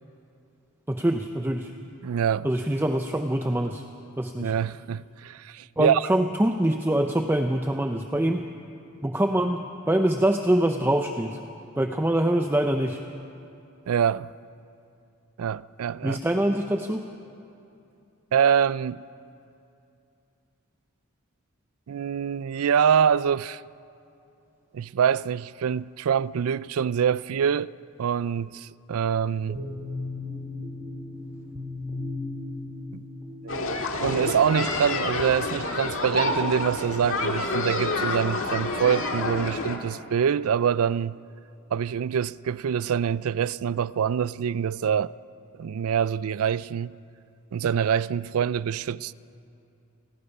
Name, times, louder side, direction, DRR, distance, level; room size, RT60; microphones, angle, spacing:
voice 1, 0.9-1.7 2.4-3.8 4.2-4.5 5.8-8.5 9.0-11.4 11.8-13.0 16.0-17.1, right 1 dB, 10° right, 0.6 m, -24 dB
voice 2, 2.0-2.5 4.4-6.0 13.9-14.3 15.4-16.2 18.3-19.0 21.9-23.6 24.7-27.7 28.0-29.6 32.9-33.0 33.4-41.2 41.7-45.1 45.6-47.0 47.5-49.1, right 8 dB, 80° right, 0.4 m, -25 dB
sound 1, 29.5-33.6, left 2 dB, 35° right, 2.2 m, -36 dB
sound 2, 33.5-39.8, left 2 dB, 70° left, 1.8 m, -28 dB
28.0 x 18.0 x 5.5 m
head